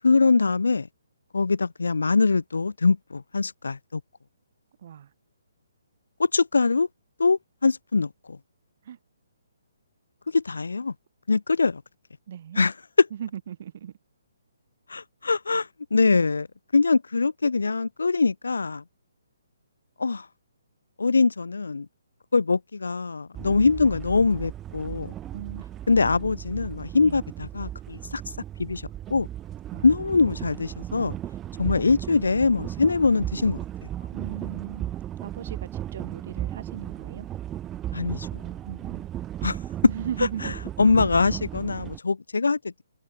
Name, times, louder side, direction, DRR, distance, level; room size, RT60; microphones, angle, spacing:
voice 1, 0.0-0.9 1.3-4.0 6.2-6.9 7.2-8.4 10.3-10.9 11.3-11.8 12.6-13.1 14.9-16.5 16.7-18.8 20.0-20.3 21.0-21.9 22.3-25.1 25.9-28.2 28.6-28.8 29.1-29.3 29.8-31.2 31.6-33.6 37.9-38.4 39.4-39.6 40.4-40.5 40.8-42.8, left 4 dB, 80° left, 2.3 m, -23 dB
voice 2, 12.3-12.6 13.2-13.9 25.3-26.0 27.0-27.2 29.7-29.9 34.1-35.0 35.2-37.3 38.6-39.1 39.9-40.5, right 9 dB, 50° right, 5.5 m, -37 dB
sound 1, 23.3-42.0, right 12 dB, 15° right, 1.6 m, -36 dB
hypercardioid pair, 145°, 0 cm